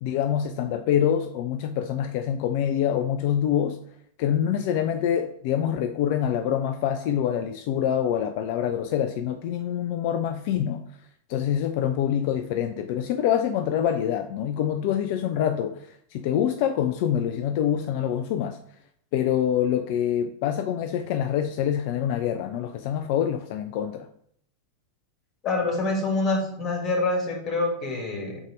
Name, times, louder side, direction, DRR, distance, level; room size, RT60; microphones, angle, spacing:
voice 1, 0.0-3.8 4.2-10.9 11.3-18.6 19.1-24.1, left 9 dB, 45° left, 0.3 m, -25 dB
voice 2, 25.4-28.4, left 2 dB, 30° left, 2.0 m, -26 dB
4.7 x 4.0 x 5.2 m
figure-of-eight pair, 90°, 0 cm